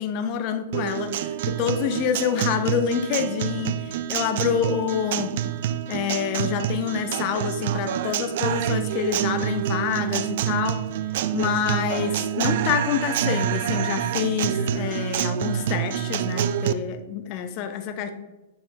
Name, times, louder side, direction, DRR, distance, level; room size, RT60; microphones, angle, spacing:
voice 1, 0.0-5.4 5.9-10.8 11.3-18.1, left 8 dB, 40° left, 8 dB, 0.7 m, -27 dB
Guitar, 0.7-16.7, right 10 dB, 55° right, 0.3 m, -27 dB
6.9 x 5.5 x 3.3 m, 1.1 s
figure-of-eight pair, 105°, 0 cm